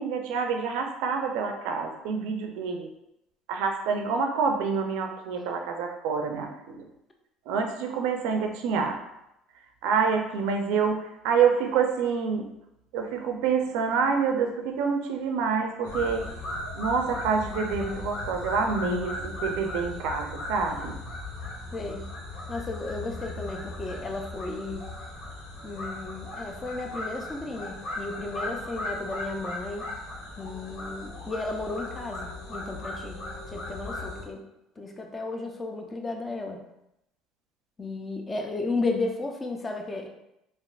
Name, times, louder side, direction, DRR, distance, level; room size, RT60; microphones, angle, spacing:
voice 1, 0.0-2.9 3.5-6.9 7.5-9.0 9.8-12.5 12.9-16.3 16.7-21.0, right 5 dB, 80° right, 4 dB, 0.4 m, -27 dB
sound 1, 15.8-34.2, left 1 dB, 85° left, 1.0 m, -37 dB
voice 2, 21.7-22.1 22.5-24.9 25.6-29.9 30.4-33.2 33.5-34.4 34.8-36.6 37.8-40.1, left 3 dB, 20° left, 2 dB, 0.4 m, -34 dB
3.4 x 2.4 x 2.3 m, 0.85 s
cardioid pair, 135°, 0 cm